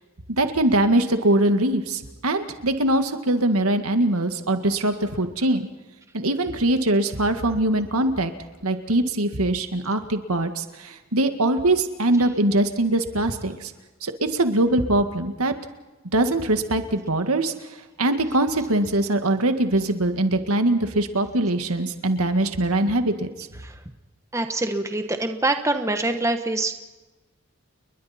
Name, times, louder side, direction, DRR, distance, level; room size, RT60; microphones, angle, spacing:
voice 1, 0.3-5.7 6.1-8.3 8.6-13.7 14.0-15.5 16.1-17.5 18.0-23.3, right 1 dB, 85° right, 7 dB, 1.9 m, -22 dB
voice 2, 24.3-26.7, right 2 dB, 15° right, 6 dB, 1.2 m, -25 dB
30.0 x 22.0 x 4.4 m, 1.2 s
head